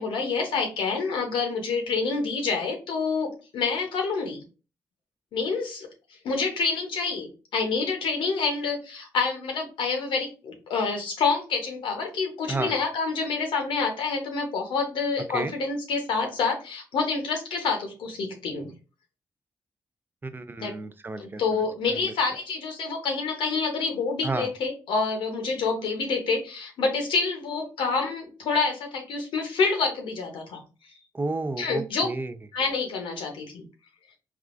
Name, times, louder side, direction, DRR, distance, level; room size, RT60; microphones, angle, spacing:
voice 1, 0.0-4.4 5.3-5.9 6.2-18.7 20.6-20.7 21.2-30.6 31.6-32.1 32.5-33.6, left 4 dB, 90° left, 4 dB, 0.7 m, -27 dB
voice 2, 20.2-22.1 24.2-24.5 31.1-32.4, right 3 dB, 25° right, 10 dB, 0.5 m, -32 dB
3.5 x 2.3 x 2.4 m, 0.33 s
cardioid pair, 55°, 8 cm